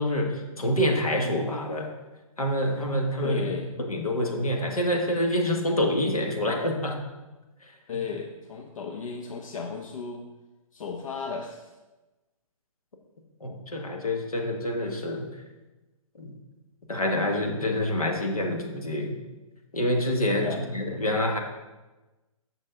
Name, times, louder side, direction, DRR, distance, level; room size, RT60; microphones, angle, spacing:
voice 1, 0.0-1.9 2.4-3.4 3.8-7.0 13.4-15.3 16.2-16.3 16.9-19.2 19.7-21.4, left 1 dB, 90° left, 2 dB, 1.5 m, -27 dB
voice 2, 3.2-3.7 7.9-10.2 10.7-11.7 20.3-20.6, left 6 dB, 70° left, 4 dB, 0.8 m, -34 dB
9.1 x 6.3 x 3.8 m, 1.1 s
hypercardioid pair, 135°, 18 cm